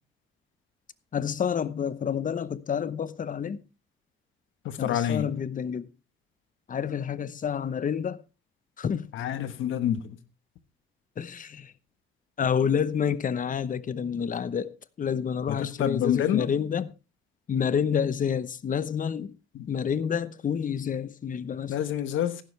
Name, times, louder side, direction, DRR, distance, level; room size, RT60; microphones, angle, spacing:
voice 1, 1.1-3.6 4.8-5.9 6.7-8.2 8.8-9.1 11.2-11.7 12.4-14.7 15.0-16.9 17.5-19.3 19.7-21.8, left 7 dB, 40° left, 0.9 m, -29 dB
voice 2, 4.6-5.2 9.1-10.2 15.8-16.5 21.7-22.4, left 10 dB, 80° left, 1.3 m, -27 dB
15.0 x 11.5 x 3.3 m
cardioid pair, 90°, 20 cm